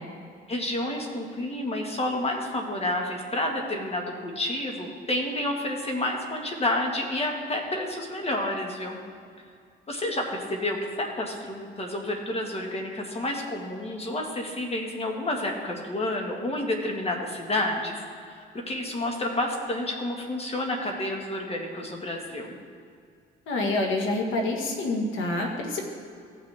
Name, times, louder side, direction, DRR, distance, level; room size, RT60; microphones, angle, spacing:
voice 1, 0.5-9.0 9.9-22.5, left 1 dB, 30° left, 2 dB, 1.6 m, -30 dB
voice 2, 23.5-25.8, left 2 dB, 85° left, 2 dB, 1.5 m, -27 dB
16.0 x 6.0 x 3.5 m, 2.3 s
cardioid pair, 90°, 20 cm